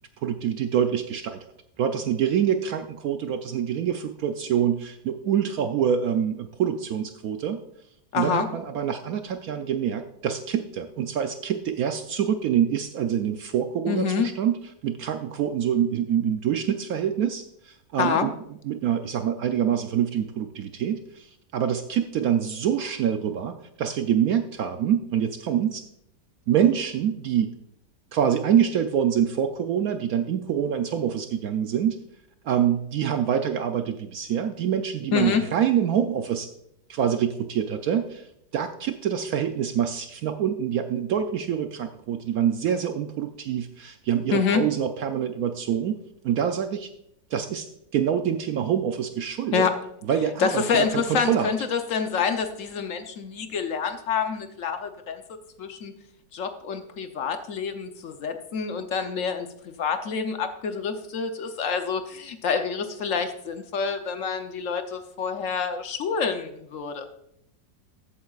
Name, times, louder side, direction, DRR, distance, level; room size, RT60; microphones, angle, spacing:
voice 1, 0.2-1.4 1.8-7.6 8.1-18.3 18.6-21.3 21.5-25.8 26.5-27.5 28.1-32.0 32.4-36.5 36.9-38.3 38.5-46.9 47.3-49.7 50.0-51.5, right 9 dB, 70° right, 7 dB, 0.9 m, -25 dB
voice 2, 8.1-8.5 13.9-14.3 18.0-18.3 35.1-35.4 44.3-44.6 49.5-49.8 50.4-55.2 55.6-55.9 56.3-59.5 59.8-67.1, left 6 dB, 60° left, 7 dB, 0.9 m, -27 dB
13.5 x 8.6 x 2.4 m, 0.75 s
omnidirectional pair, 1.9 m